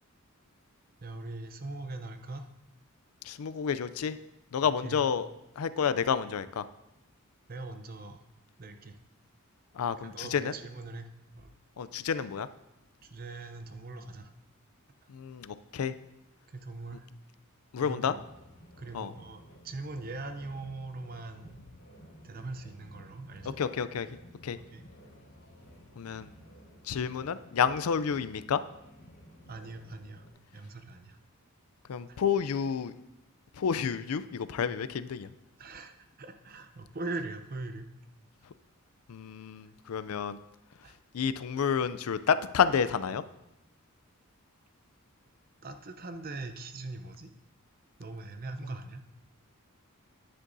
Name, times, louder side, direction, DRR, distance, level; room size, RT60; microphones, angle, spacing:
voice 1, 1.0-2.5 4.6-5.0 7.5-8.2 8.6-9.0 10.0-11.5 13.0-14.3 16.5-17.1 17.8-18.2 18.8-21.6 22.2-23.6 24.5-24.8 26.1-26.2 29.5-30.3 30.5-31.2 32.1-32.2 35.6-37.9 40.8-41.0 45.6-47.3 48.0-49.1, right 2 dB, 45° right, 8 dB, 0.7 m, -41 dB
voice 2, 3.3-4.2 4.5-5.3 5.6-6.6 9.8-10.5 11.8-12.5 15.1-15.9 17.7-18.1 18.9-19.1 23.6-24.1 24.4-24.6 26.0-26.3 26.9-28.6 31.9-32.9 33.6-35.3 39.1-40.4 41.1-43.2, left 7 dB, 90° left, 14 dB, 0.4 m, -30 dB
sound 1, 18.1-30.3, equal, 70° left, 3.4 m, -54 dB
10.0 x 9.8 x 2.7 m, 0.89 s
head